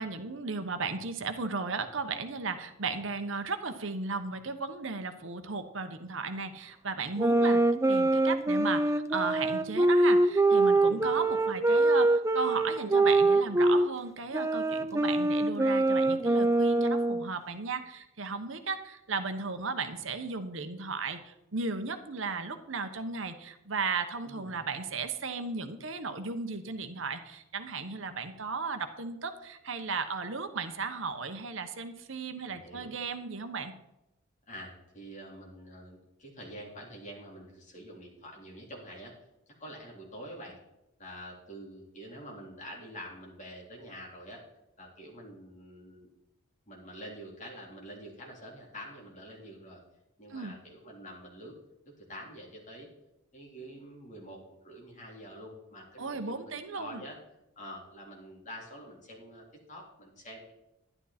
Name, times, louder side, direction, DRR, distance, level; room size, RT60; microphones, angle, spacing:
voice 1, 0.0-33.7 50.3-50.6 56.0-57.0, right 4 dB, 65° right, 8 dB, 1.0 m, -35 dB
sound 1, 7.2-13.9 14.3-17.3, right 2 dB, 15° right, 0.4 m, -24 dB
voice 2, 10.9-11.4 24.2-24.5 32.5-32.9 34.5-39.1 39.6-40.6 41.0-44.4 44.8-46.1 46.7-49.8 50.2-51.5 52.0-52.9 53.3-57.2 57.6-60.5, equal, 35° left, -2 dB, 3.7 m, -46 dB
12.0 x 11.0 x 4.3 m, 0.89 s
head